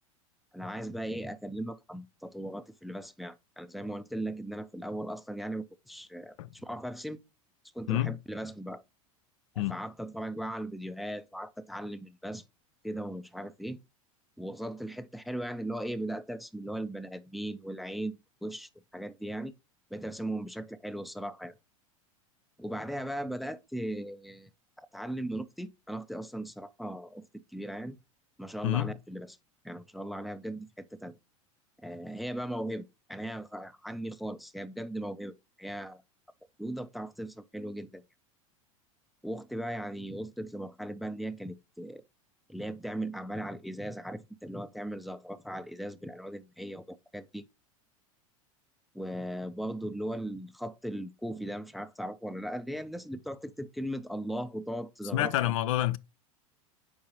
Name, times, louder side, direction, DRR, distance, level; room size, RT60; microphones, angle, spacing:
voice 1, 0.5-7.2 7.7-8.8 9.5-12.4 12.8-13.8 14.4-19.5 19.9-21.5 22.6-24.5 24.8-27.3 27.5-28.0 28.4-29.4 29.6-31.1 31.8-36.0 36.6-38.0 39.2-42.0 42.5-47.5 48.9-55.6, right 1 dB, ahead, 0.5 m, -38 dB
voice 2, 55.1-56.0, left 14 dB, 65° left, 0.4 m, -27 dB
7.0 x 4.6 x 2.9 m
figure-of-eight pair, 85°, 18 cm